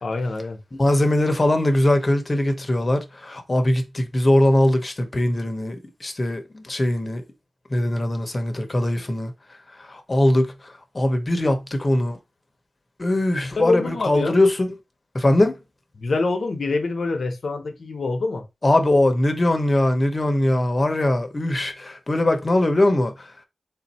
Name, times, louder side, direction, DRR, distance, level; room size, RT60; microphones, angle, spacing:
voice 1, 0.0-0.6 13.4-14.3 15.9-18.4, left 3 dB, 65° left, 0.8 m, -25 dB
voice 2, 0.7-5.8 6.0-7.2 7.7-9.3 9.8-10.5 10.9-12.2 13.0-14.6 15.1-15.6 18.6-23.3, left 1 dB, 35° left, 0.9 m, -21 dB
3.7 x 2.7 x 4.2 m
wide cardioid pair, 75°, 0 cm